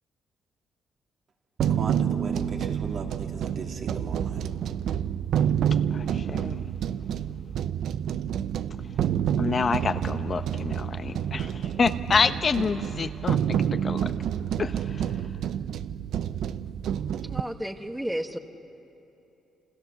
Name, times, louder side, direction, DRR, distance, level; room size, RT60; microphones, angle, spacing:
voice 1, 1.6-4.4, right 4 dB, 60° right, 1 dB, 2.7 m, -36 dB
sound 1, 1.6-17.4, right 9 dB, 75° right, 0.6 m, -28 dB
voice 2, 5.9-6.6 9.4-13.4 13.8-14.0 14.6-14.7, left 5 dB, 40° left, 10 dB, 0.9 m, -27 dB
voice 3, 17.2-18.4, right 1 dB, 5° right, 6 dB, 1.3 m, -32 dB
28.0 x 27.5 x 7.1 m, 2.8 s
cardioid pair, 90°, 0 cm